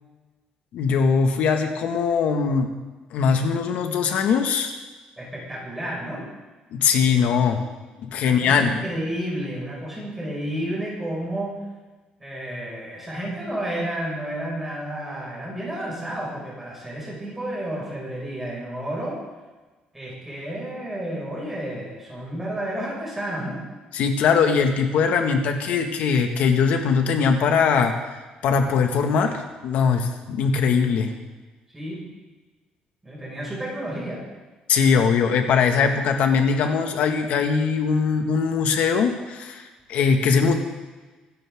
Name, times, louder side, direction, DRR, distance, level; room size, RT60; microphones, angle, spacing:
voice 1, 0.7-2.7 3.1-4.7 6.7-7.6 8.0-8.7 23.9-27.9 28.4-29.3 29.6-31.1 34.7-40.5, left 6 dB, 65° left, 4 dB, 2.0 m, -21 dB
voice 2, 5.2-6.3 8.2-11.6 12.2-19.2 19.9-23.6 31.7-32.0 33.0-34.3, right 1 dB, 10° right, -5 dB, 6.0 m, -31 dB
25.0 x 12.5 x 3.8 m, 1.3 s
cardioid pair, 175°, 3 cm